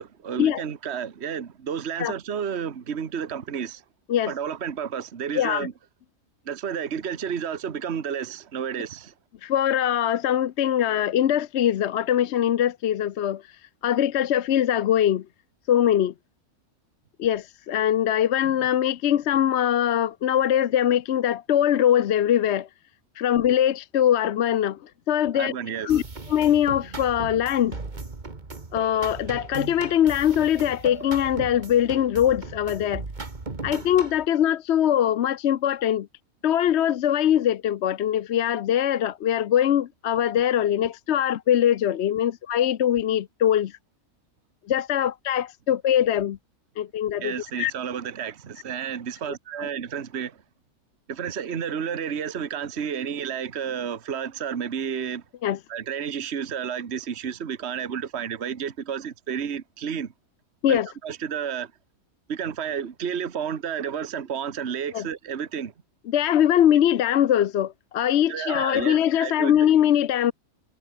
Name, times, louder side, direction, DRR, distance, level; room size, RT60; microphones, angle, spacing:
voice 1, 0.0-3.8 4.3-5.7 6.4-9.1 25.3-26.0 47.2-50.4 51.1-55.2 55.7-60.1 60.7-61.7 62.3-65.7 68.3-69.7, right 7 dB, 50° right, 1.5 m, -31 dB
voice 2, 5.3-5.7 9.4-13.4 13.8-15.3 15.7-16.1 17.2-22.7 23.2-25.5 25.8-26.0 26.3-27.8 28.7-33.0 33.6-36.1 36.4-43.7 44.7-46.4 46.8-47.7 49.6-49.7 55.4-55.6 60.6-60.9 64.9-65.0 66.1-70.3, left 10 dB, 60° left, 0.8 m, -22 dB
sound 1, 25.9-34.3, right 3 dB, 30° right, 2.0 m, -37 dB
omnidirectional pair, 1.5 m